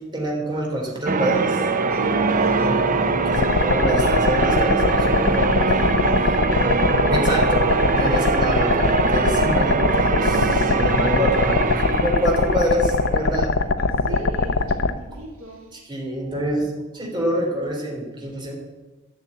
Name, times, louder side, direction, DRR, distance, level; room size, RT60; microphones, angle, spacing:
voice 1, 0.0-1.7 3.2-5.5 5.7-5.9 7.1-13.7 14.1-14.2 15.8-18.5, right 1 dB, 20° right, -2 dB, 3.2 m, -26 dB
Church bell, 1.1-13.3, right 3 dB, 40° right, 0.7 m, -22 dB
voice 2, 1.9-2.9 5.0-7.0 7.9-8.3 13.8-15.7, right 1 dB, 70° right, -1 dB, 2.7 m, -36 dB
sound 1, 3.3-14.9, left 3 dB, 60° left, 0.6 m, -22 dB
12.0 x 6.9 x 8.5 m, 1.2 s
head